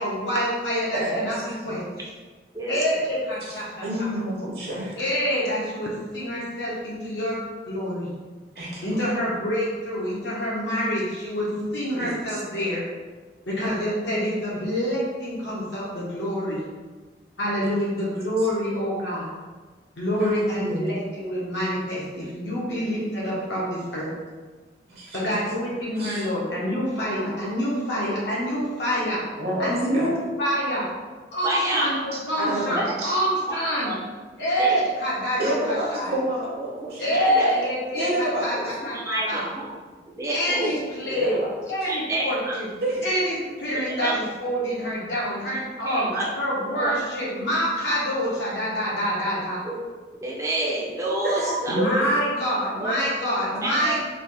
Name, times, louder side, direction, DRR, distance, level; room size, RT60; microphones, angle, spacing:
voice 1, 0.0-1.9 2.7-3.7 4.0-4.1 4.9-7.4 7.7-8.1 8.8-11.5 11.7-12.8 13.5-16.6 17.4-19.3 20.0-24.1 25.1-29.2 29.6-30.9 31.3-33.9 34.4-36.1 37.0-39.4 40.3-41.3 41.7-42.7 43.0-46.1 46.4-49.6 51.7-54.0, equal, 75° left, -6 dB, 1.0 m, -26 dB
voice 2, 0.9-1.7 3.4-3.5 3.8-5.0 8.5-9.1 11.5-12.4 18.4-18.5 20.2-20.9 24.9-25.3 26.0-26.3 29.4-30.1 32.4-33.1 35.4-37.2 37.9-38.7 41.1-41.5 42.8-43.0 51.2-52.2, right 1 dB, 60° right, -4 dB, 0.9 m, -29 dB
voice 3, 2.5-3.1 31.4-31.9 32.7-32.9 33.5-33.6 33.8-33.9 34.6-34.8 36.6-37.5 38.9-39.8 40.1-40.8 41.9-42.5 43.5-44.1 45.8-46.3 46.8-46.9 49.6-49.8 50.2-51.8 52.8-53.1 53.5-54.0, right 2 dB, 15° right, -4 dB, 0.5 m, -29 dB
3.3 x 2.5 x 4.0 m, 1.4 s
head